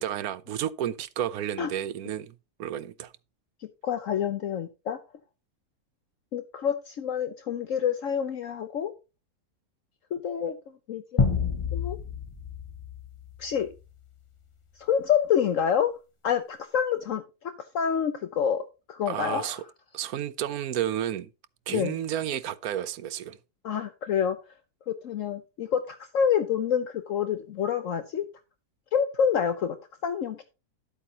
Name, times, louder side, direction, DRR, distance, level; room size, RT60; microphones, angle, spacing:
voice 1, 0.0-3.1 19.1-19.6 19.9-21.3 21.7-23.4, right 10 dB, 85° right, 1.2 m, -31 dB
voice 2, 3.8-5.0 6.3-8.9 10.1-10.6 10.9-11.4 11.7-12.0 13.4-13.7 14.8-15.9 16.2-18.6 18.9-19.6 21.7-22.0 23.6-24.4 24.9-28.2 28.9-29.8 30.0-30.4, left 8 dB, 65° left, 1.1 m, -27 dB
sound 1, 11.2-14.0, left 5 dB, 25° left, 1.0 m, -29 dB
12.5 x 8.3 x 2.9 m
omnidirectional pair, 1.5 m